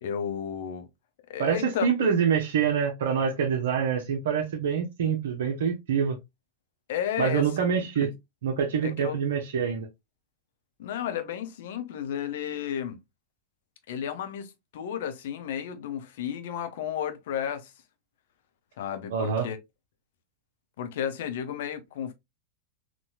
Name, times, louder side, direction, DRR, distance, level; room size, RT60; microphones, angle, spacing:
voice 1, 0.0-0.9 1.3-2.1 6.9-7.5 8.0-8.1 8.8-9.2 10.8-13.0 13.9-17.7 18.8-19.6 20.8-22.1, left 9 dB, 55° left, 0.7 m, -33 dB
voice 2, 1.4-6.2 7.2-8.1 8.4-9.9 19.1-19.5, right 7 dB, 60° right, 0.7 m, -26 dB
4.1 x 3.0 x 2.3 m
figure-of-eight pair, 90°, 0 cm